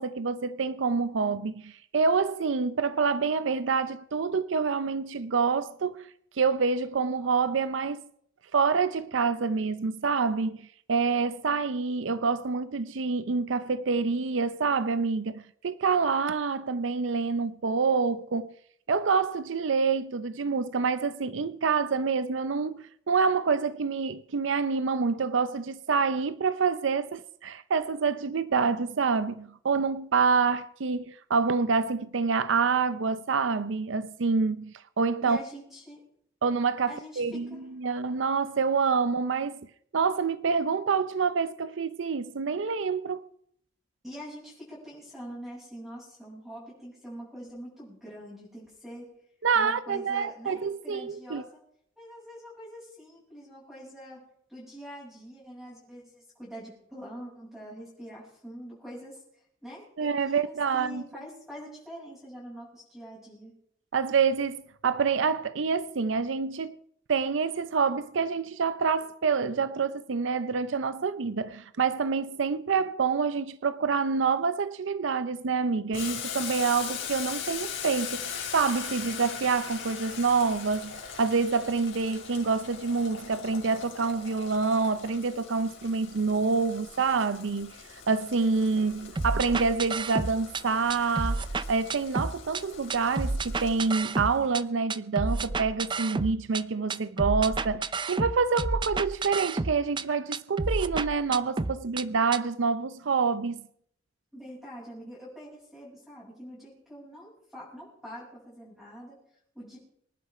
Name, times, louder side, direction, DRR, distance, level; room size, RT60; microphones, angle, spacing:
voice 1, 0.0-8.0 8.5-18.5 18.9-35.4 36.4-39.6 39.9-43.2 49.4-51.4 60.0-61.0 63.9-64.6 64.8-66.8 67.1-103.6, right 5 dB, 70° right, 0.6 m, -27 dB
voice 2, 35.2-36.0 36.9-37.6 44.0-49.1 49.5-51.6 52.0-54.2 54.5-63.5 104.3-109.8, equal, ahead, 7.8 m, -44 dB
Boiling, 75.9-94.4, left 7 dB, 75° left, 5.0 m, -40 dB
sound 1, 89.2-90.6 90.9-92.6 92.9-94.6 94.9-96.6 96.9-100.0 100.3-102.0 102.3-102.4, right 3 dB, 25° right, 0.5 m, -30 dB
25.0 x 11.0 x 4.9 m
head